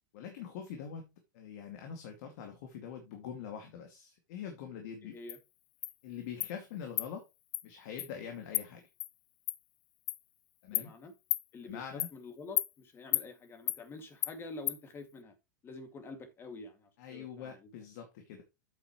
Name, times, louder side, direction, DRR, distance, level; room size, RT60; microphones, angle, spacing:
voice 1, 0.1-5.2 6.0-7.3 7.6-8.8 10.6-10.9 11.6-12.1 17.0-18.4, left 7 dB, 60° left, 2.3 m, -44 dB
voice 2, 5.0-5.4 10.7-11.1 11.5-15.3 15.6-17.7, left 3 dB, 25° left, 2.3 m, -47 dB
Insect, 5.3-5.4 5.8-5.9 6.4-6.5 7.0-7.1 7.5-7.6 8.0-8.1 8.5-8.6 9.0-9.1 9.5-9.6 10.1-10.2 10.7-10.9 11.3-11.4 12.0-12.1 12.6-12.7 13.1-13.3 13.7-13.8 14.2-14.3 14.7-14.8, left 17 dB, 40° left, 0.5 m, -32 dB
8.7 x 7.8 x 3.1 m
hypercardioid pair, 125°, 10 cm